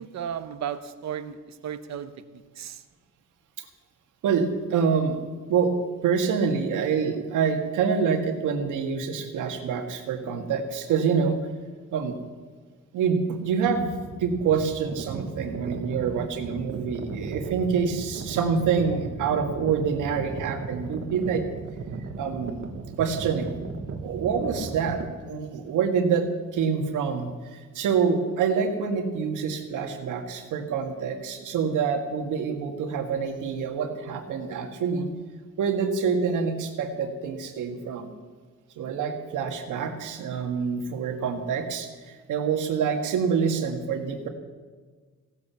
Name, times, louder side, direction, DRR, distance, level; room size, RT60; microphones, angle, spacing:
voice 1, 0.0-2.8, right 8 dB, 65° right, 1.1 m, -35 dB
voice 2, 4.2-5.2 5.5-5.7 6.0-11.4 11.9-12.1 12.9-13.9 14.2-21.4 22.2-22.6 23.0-23.5 24.0-26.3 26.5-35.1 35.6-38.1 38.8-44.3, right 6 dB, 85° right, 2.0 m, -26 dB
sound 1, 13.7-25.1, right 4 dB, 45° right, 1.7 m, -36 dB
16.5 x 10.5 x 7.2 m
cardioid pair, 90°, 30 cm